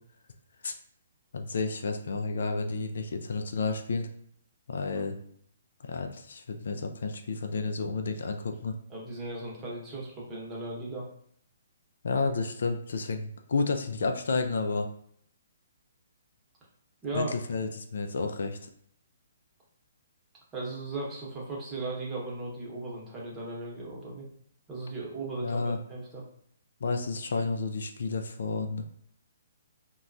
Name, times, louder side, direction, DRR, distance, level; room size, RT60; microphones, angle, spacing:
voice 1, 1.3-4.1 4.7-5.2 5.8-8.8 12.0-14.9 17.1-18.7 25.4-25.8 26.8-28.9, left 4 dB, 70° left, 5 dB, 0.3 m, -31 dB
voice 2, 8.9-11.1 17.0-17.3 20.5-24.3 24.7-26.2, right 2 dB, 20° right, -5 dB, 0.9 m, -37 dB
2.9 x 2.2 x 2.5 m, 0.65 s
hypercardioid pair, 135°, 0 cm